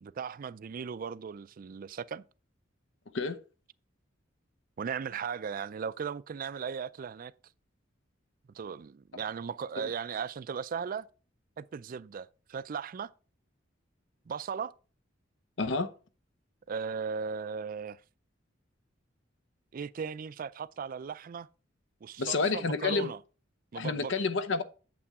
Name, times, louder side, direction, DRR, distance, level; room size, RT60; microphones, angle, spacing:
voice 1, 0.0-2.2 4.8-7.3 8.5-11.1 11.6-13.1 14.3-14.7 16.7-18.0 19.7-21.5 22.0-23.2 23.7-24.1, right 6 dB, 45° right, 0.4 m, -37 dB
voice 2, 15.6-15.9 22.2-23.1 23.7-24.6, left 4 dB, 65° left, 0.8 m, -29 dB
8.6 x 7.6 x 3.6 m
head